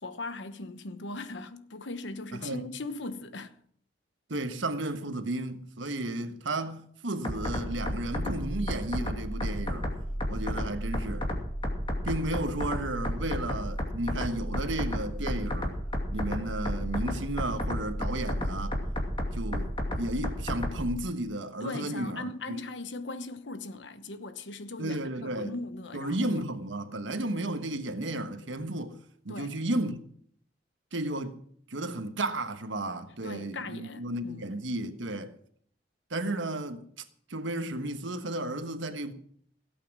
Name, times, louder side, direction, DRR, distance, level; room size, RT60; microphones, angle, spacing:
voice 1, 0.0-3.6 21.6-26.4 29.3-29.6 33.2-34.5, left 2 dB, 70° left, 1.1 m, -39 dB
voice 2, 4.3-9.9 10.3-11.3 12.0-15.8 16.1-18.9 19.3-22.6 24.8-25.5 25.9-29.0 29.2-30.0 30.9-31.4 31.7-35.3 36.1-39.1, right 1 dB, 80° right, 1.4 m, -33 dB
sound 1, 7.2-20.9, equal, 30° left, 2.5 m, -32 dB
17.0 x 8.6 x 6.2 m
head